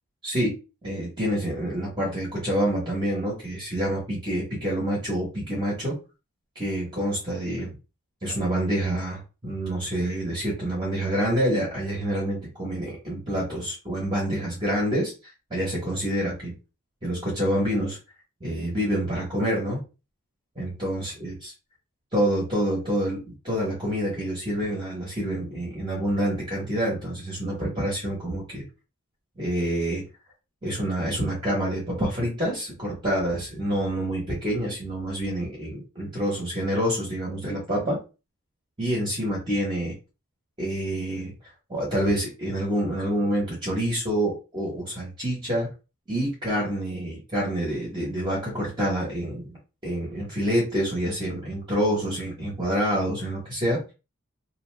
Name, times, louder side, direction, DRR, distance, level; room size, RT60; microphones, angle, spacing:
voice 1, 0.2-0.5 0.8-6.0 6.5-7.7 8.2-15.1 15.5-16.5 17.0-18.0 18.4-19.8 20.6-21.3 22.1-28.6 29.4-30.0 30.6-38.0 38.8-39.9 40.6-41.3 41.7-45.7 46.1-49.5 49.8-53.8, equal, 20° right, -5 dB, 1.0 m, -27 dB
2.6 x 2.2 x 3.1 m, 0.30 s
head